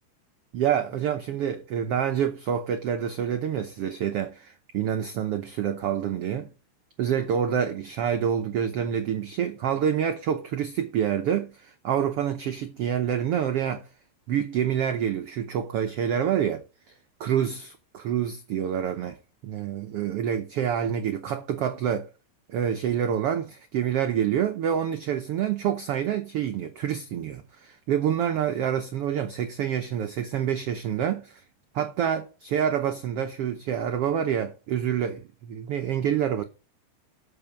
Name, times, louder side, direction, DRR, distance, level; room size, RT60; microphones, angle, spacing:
voice 1, 0.5-6.5 7.0-13.9 14.3-16.6 17.2-19.2 19.4-22.1 22.5-31.4 31.7-36.4, right 9 dB, 85° right, 1.3 m, -27 dB
12.5 x 6.2 x 5.0 m
omnidirectional pair, 3.8 m